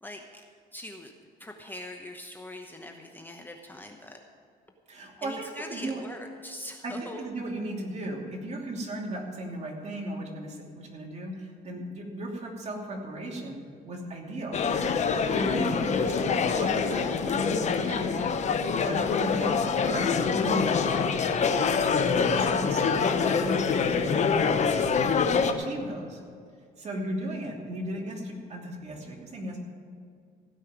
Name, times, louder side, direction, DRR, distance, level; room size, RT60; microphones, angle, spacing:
voice 1, 0.0-0.4 0.7-1.1 1.4-4.2 5.2-7.2, left 1 dB, 10° left, 3 dB, 1.0 m, -42 dB
voice 2, 4.9-5.3 5.7-6.0 6.8-14.6 15.3-20.9 21.8-26.2 26.8-29.6, right 1 dB, 40° right, -1 dB, 2.8 m, -36 dB
sound 1, 14.5-25.5, left 5 dB, 45° left, 0.9 m, -25 dB
16.0 x 5.6 x 9.4 m, 2.2 s
cardioid pair, 110°, 17 cm